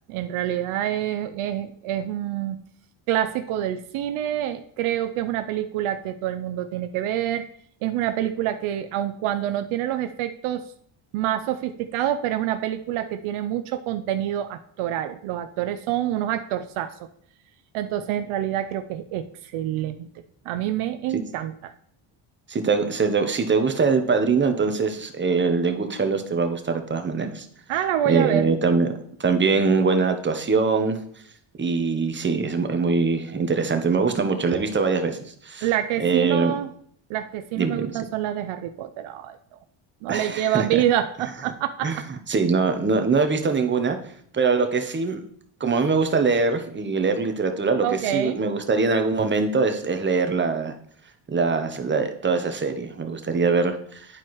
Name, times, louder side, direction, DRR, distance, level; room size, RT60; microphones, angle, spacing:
voice 1, 0.1-2.6 3.1-7.5 7.8-10.7 11.1-17.1 17.7-20.1 20.5-21.7 27.7-28.5 35.6-36.7 37.1-39.6 40.0-42.0 47.8-48.4, right 11 dB, 80° right, 9 dB, 0.6 m, -27 dB
voice 2, 22.5-27.5 28.0-28.9 29.2-31.0 31.6-35.7 36.0-36.5 37.6-38.0 40.1-40.8 41.8-42.0 42.3-44.0 44.3-45.2 45.6-50.7 51.3-54.1, right 4 dB, 25° right, 7 dB, 0.8 m, -23 dB
10.5 x 4.5 x 3.1 m, 0.63 s
cardioid pair, 100°, 49 cm